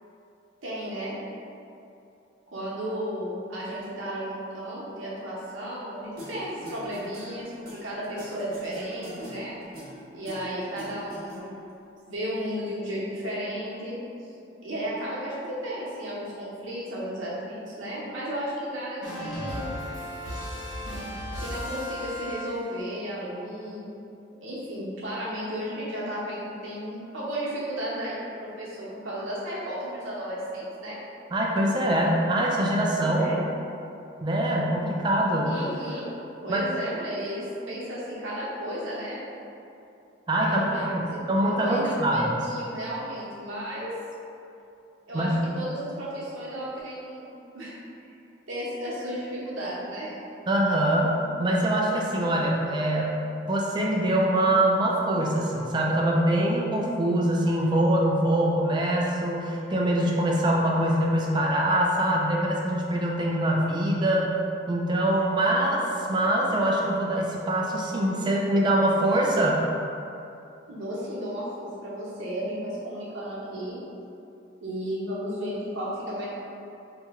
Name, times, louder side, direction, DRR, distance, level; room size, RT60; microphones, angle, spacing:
voice 1, 0.6-1.2 2.5-7.5 7.8-9.6 10.1-11.4 12.1-14.3 14.6-19.7 21.4-23.9 24.4-31.0 33.0-33.4 35.4-36.1 36.4-39.2 40.4-43.9 45.1-47.2 47.5-47.7 48.5-50.2 70.7-73.8 74.6-76.3, equal, 90° right, -7 dB, 0.9 m, -34 dB
sound 1, 6.2-11.7, equal, 50° right, 0.9 m, -43 dB
sound 2, 19.0-22.9, equal, 85° left, 1.2 m, -35 dB
voice 2, 31.3-33.3 34.2-35.6 36.5-36.6 40.3-42.4 45.1-45.4 50.5-51.1 51.4-53.2 53.5-64.3 64.7-69.6, right 1 dB, 25° right, -2 dB, 0.3 m, -24 dB
2.9 x 2.8 x 3.5 m, 2.7 s
head